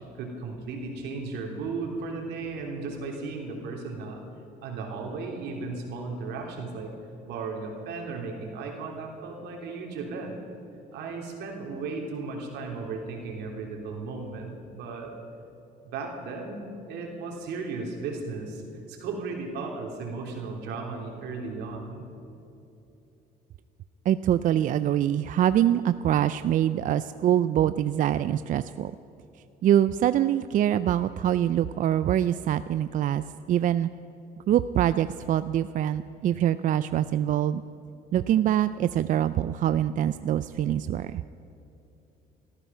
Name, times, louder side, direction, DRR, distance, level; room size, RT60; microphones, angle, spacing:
voice 1, 0.2-4.2 4.6-6.9 7.3-10.4 10.9-15.1 15.9-18.6 18.9-22.0, right 4 dB, 85° right, 1 dB, 3.2 m, -35 dB
voice 2, 24.1-28.9 29.6-33.9 34.5-37.6 38.1-41.2, right 11 dB, 50° right, 13 dB, 0.4 m, -24 dB
18.5 x 14.0 x 5.7 m, 2.9 s
cardioid pair, 110°, 17 cm